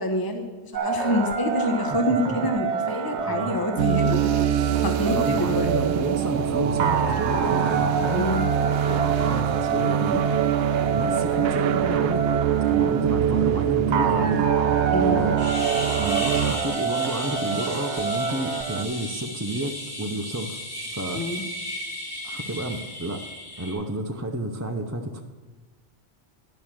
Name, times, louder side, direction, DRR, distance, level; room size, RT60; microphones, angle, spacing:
voice 1, 0.0-4.2 4.8-5.7 8.1-8.5 14.9-15.2 21.1-21.4, left 1 dB, 20° left, 4 dB, 1.0 m, -26 dB
sound 1, 0.7-18.8, right 5 dB, 85° right, 1.1 m, -28 dB
voice 2, 3.1-3.6 5.1-8.3 8.9-10.3 10.9-12.3 12.7-14.5 15.0-15.4 16.0-20.6 20.9-21.2 22.2-23.3 23.6-25.2, right 1 dB, 20° right, 2 dB, 0.6 m, -30 dB
sound 2, 3.8-16.5, right 9 dB, 65° right, 0.7 m, -24 dB
sound 3, 15.4-23.7, left 1 dB, 55° left, 3.9 m, -35 dB
11.0 x 6.4 x 7.4 m, 1.3 s
omnidirectional pair, 1.1 m